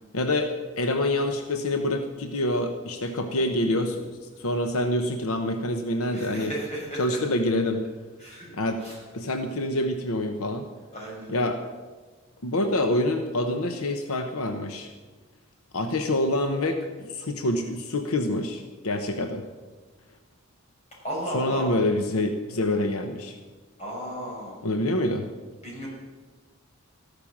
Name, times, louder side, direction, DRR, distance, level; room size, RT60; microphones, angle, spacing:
voice 1, 0.1-6.5 7.0-7.8 8.6-8.8 9.1-10.6 11.3-11.6 12.4-14.9 15.7-19.4 21.3-23.4 24.6-25.3, left 1 dB, 85° left, 6 dB, 1.0 m, -26 dB
voice 2, 6.0-7.2 8.2-8.5 8.8-9.0 10.9-11.4 21.0-21.7 23.8-24.6 25.6-25.9, equal, 30° left, -3 dB, 6.0 m, -34 dB
14.0 x 12.0 x 7.3 m, 1.3 s
head